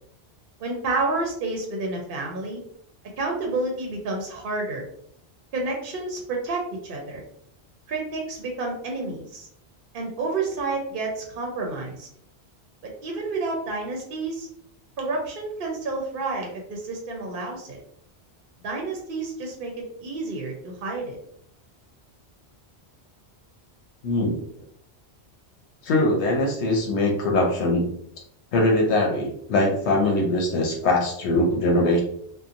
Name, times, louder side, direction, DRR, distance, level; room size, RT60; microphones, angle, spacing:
voice 1, 0.6-2.6 3.2-4.8 5.5-7.2 7.9-9.5 9.9-12.1 12.8-14.5 15.0-17.8 18.6-21.2, right 3 dB, 60° right, 0 dB, 0.7 m, -30 dB
voice 2, 24.0-24.4 25.8-27.9 28.5-32.0, left 1 dB, 85° left, 0 dB, 0.9 m, -22 dB
2.8 x 2.1 x 2.4 m, 0.67 s
omnidirectional pair, 1.1 m